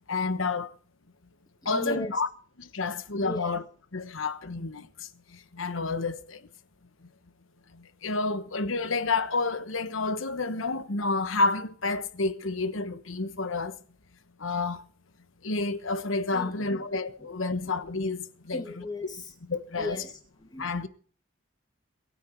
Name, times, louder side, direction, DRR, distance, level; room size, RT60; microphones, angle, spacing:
voice 1, 0.1-0.7 1.6-2.3 2.6-3.6 3.9-6.5 7.7-13.8 14.4-14.8 15.4-18.8 19.5-20.0 20.6-20.9, left 3 dB, 90° left, 1.2 m, -30 dB
voice 2, 1.6-2.4 3.2-3.5 16.3-16.9 17.6-17.7 18.5-19.3 19.8-20.9, left 1 dB, 20° left, 2.4 m, -38 dB
23.5 x 9.4 x 4.6 m
head